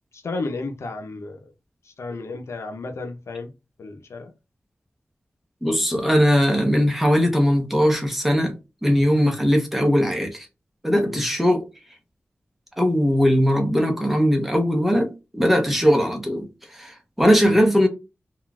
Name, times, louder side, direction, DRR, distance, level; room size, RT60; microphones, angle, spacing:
voice 1, 0.1-1.5 1.8-3.5 3.8-4.3 11.0-11.3 17.4-17.6, left 3 dB, 85° left, 0.6 m, -33 dB
voice 2, 5.6-8.5 8.8-10.5 10.8-11.6 12.8-16.5 16.7-17.9, equal, 5° right, 0.8 m, -19 dB
3.7 x 2.4 x 2.3 m
wide cardioid pair, 100°, 5 cm